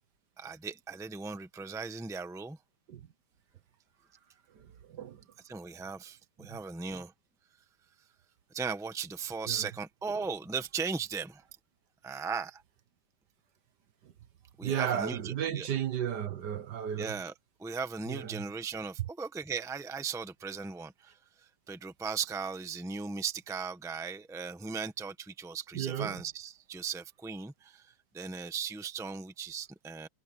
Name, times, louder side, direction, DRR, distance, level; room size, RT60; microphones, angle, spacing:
voice 1, 0.4-2.6 5.5-7.1 8.5-11.4 12.0-12.6 14.6-15.7 17.0-17.3 17.6-21.1 21.7-30.1, right 5 dB, ahead, 0.9 m, -37 dB
voice 2, 4.5-5.2 6.5-6.6 9.4-9.7 14.6-17.2 18.1-18.4 25.7-26.2, right 9 dB, 60° right, 1.5 m, -34 dB
omnidirectional pair, 2.2 m